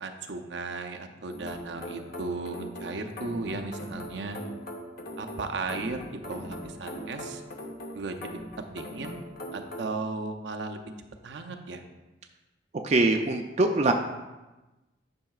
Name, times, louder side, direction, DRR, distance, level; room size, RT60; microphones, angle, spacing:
voice 1, 0.0-4.4 5.2-7.4 7.9-8.3 8.7-9.2 9.5-10.8 11.2-11.8, right 3 dB, 75° right, 5 dB, 0.6 m, -35 dB
sound 1, 1.3-10.0, equal, 55° left, 0.8 m, -41 dB
voice 2, 12.8-13.9, right 2 dB, 35° right, 4 dB, 0.4 m, -23 dB
10.5 x 5.5 x 2.4 m, 1.1 s
head